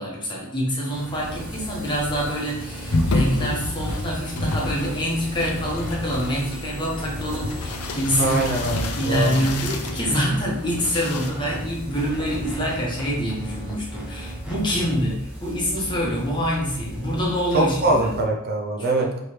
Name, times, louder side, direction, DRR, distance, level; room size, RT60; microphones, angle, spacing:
voice 1, 0.0-8.6 9.0-18.1 18.8-19.2, equal, 20° left, -3 dB, 1.0 m, -26 dB
sound 1, 0.9-18.2, equal, 5° right, 0.8 m, -35 dB
sound 2, 2.9-5.1 5.4-10.1 10.6-11.3, left 2 dB, 85° left, 0.5 m, -28 dB
voice 2, 8.2-9.4 17.5-19.2, right 2 dB, 45° right, 1 dB, 0.5 m, -23 dB
4.4 x 3.2 x 3.2 m, 0.80 s
head